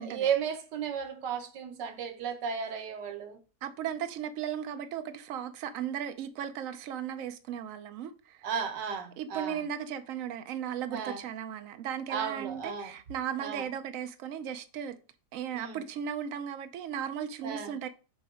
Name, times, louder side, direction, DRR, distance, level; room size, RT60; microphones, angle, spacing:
voice 1, 0.0-3.4 8.4-9.6 10.9-11.2 12.1-12.9 13.4-13.7 15.5-15.8 17.4-17.7, right 7 dB, 90° right, 1.5 m, -34 dB
voice 2, 3.6-8.4 9.2-15.0 15.3-17.9, right 9 dB, 65° right, 0.9 m, -36 dB
7.0 x 2.9 x 4.9 m
omnidirectional pair, 1.8 m